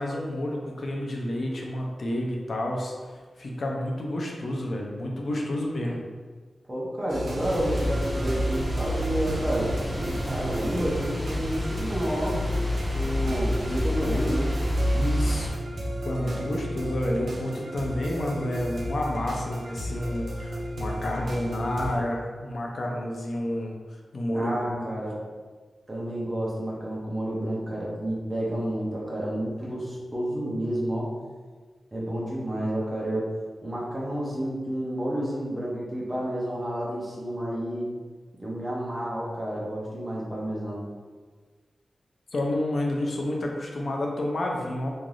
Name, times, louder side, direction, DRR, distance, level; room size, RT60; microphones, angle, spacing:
voice 1, 0.0-6.0 14.9-15.5 16.0-23.7 24.1-24.9 42.3-44.9, left 1 dB, 55° left, -1 dB, 0.5 m, -30 dB
voice 2, 6.7-9.7 10.2-12.4 12.9-14.5 24.3-25.2 25.9-31.1 31.9-33.3 33.6-37.9 38.4-40.8, equal, 20° right, -5 dB, 0.6 m, -30 dB
sound 1, 7.1-22.0, equal, 70° right, 0.5 m, -34 dB
sound 2, 7.4-15.5, equal, 45° right, 1.0 m, -29 dB
3.2 x 2.5 x 2.3 m, 1.4 s
wide cardioid pair, 155°, 0 cm